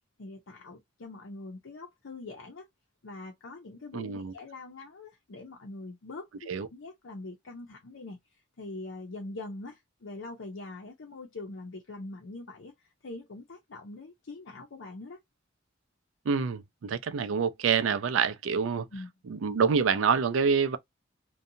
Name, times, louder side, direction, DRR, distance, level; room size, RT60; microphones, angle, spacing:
voice 1, 0.2-2.7 3.0-6.3 6.7-8.2 8.6-15.2 18.9-19.1, left 2 dB, 80° left, 0.6 m, -43 dB
voice 2, 3.9-4.3 6.5-6.7 16.3-18.9 19.3-20.8, right 6 dB, 90° right, 0.4 m, -26 dB
2.6 x 2.2 x 2.6 m
head